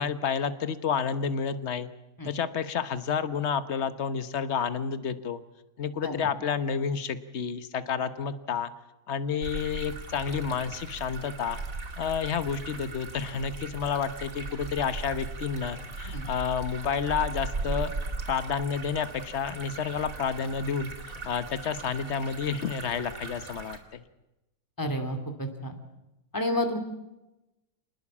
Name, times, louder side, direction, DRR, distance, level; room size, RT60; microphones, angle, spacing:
voice 1, 0.0-1.9 2.2-5.4 5.8-8.7 9.1-11.6 12.0-17.9 18.3-24.0, left 6 dB, 50° left, 12 dB, 1.4 m, -30 dB
sound 1, 9.4-23.8, right 3 dB, 65° right, 2.9 m, -38 dB
voice 2, 24.8-25.8 26.3-26.8, left 1 dB, 15° left, 5 dB, 2.6 m, -30 dB
27.5 x 20.0 x 7.4 m, 0.97 s
omnidirectional pair, 1.6 m